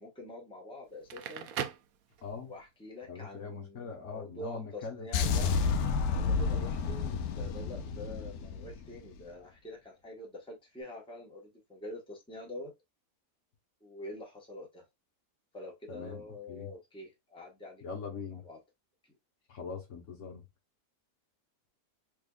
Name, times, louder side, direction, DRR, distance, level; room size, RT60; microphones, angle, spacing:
voice 1, 0.0-1.5 2.4-5.5 6.1-12.7 13.8-14.8 15.5-17.8 18.3-18.6, left 1 dB, 5° left, 1.0 m, -46 dB
Crackle, 0.9-2.6, right 9 dB, 75° right, 1.0 m, -39 dB
voice 2, 2.2-2.5 3.1-5.8 15.9-16.7 17.8-18.4 19.5-20.4, left 5 dB, 60° left, 1.2 m, -42 dB
sound 1, 5.1-9.2, left 5 dB, 85° left, 1.1 m, -30 dB
3.6 x 3.5 x 2.2 m
omnidirectional pair, 1.6 m